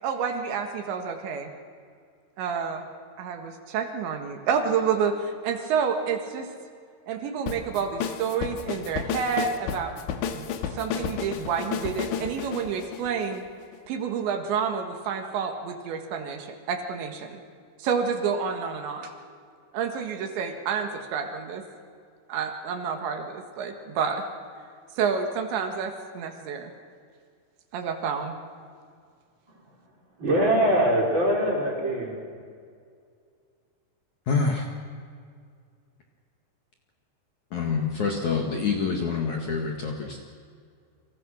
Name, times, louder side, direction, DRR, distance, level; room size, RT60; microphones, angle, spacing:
voice 1, 0.0-1.5 2.4-2.9 3.2-6.5 7.1-9.9 10.3-13.4 13.9-17.4 17.8-19.1 19.7-21.6 22.3-24.2 25.0-26.7 27.7-28.4, right 6 dB, 75° right, 5 dB, 3.9 m, -29 dB
sound 1, 7.5-13.8, left 8 dB, 75° left, 3.6 m, -32 dB
voice 2, 29.8-32.2, right 1 dB, 25° right, -1 dB, 5.1 m, -23 dB
voice 3, 34.3-34.6 37.5-40.2, left 5 dB, 55° left, 2 dB, 2.5 m, -26 dB
29.5 x 25.5 x 6.4 m, 2.2 s
omnidirectional pair, 5.3 m